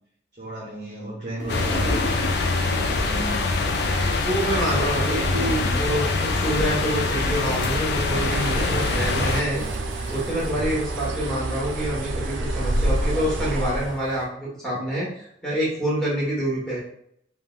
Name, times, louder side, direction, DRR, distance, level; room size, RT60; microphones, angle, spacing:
voice 1, 0.4-2.2 2.7-3.5 4.3-5.9 6.5-6.7, right 1 dB, 40° right, -4 dB, 0.6 m, -34 dB
sound 1, 1.4-14.2, equal, 85° left, 0.8 m, -39 dB
sound 2, 1.5-9.4, left 3 dB, 55° left, 0.3 m, -24 dB
voice 2, 4.2-9.6 10.1-16.8, right 1 dB, 5° left, -7 dB, 1.1 m, -27 dB
Bird, 7.7-14.0, right 1 dB, 85° right, 0.4 m, -28 dB
3.5 x 2.1 x 2.3 m, 0.68 s
head